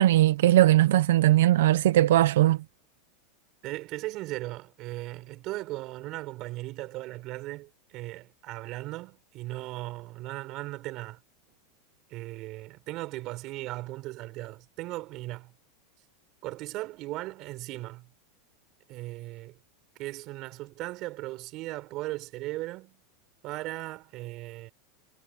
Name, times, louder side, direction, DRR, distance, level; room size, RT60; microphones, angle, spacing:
voice 1, 0.0-2.6, right 14 dB, 85° right, 0.7 m, -20 dB
voice 2, 3.6-11.2 12.1-15.5 16.4-18.1 18.9-19.6 20.0-23.0 23.4-24.7, right 18 dB, 35° right, 5.7 m, -37 dB
supercardioid pair, 165°, 0 cm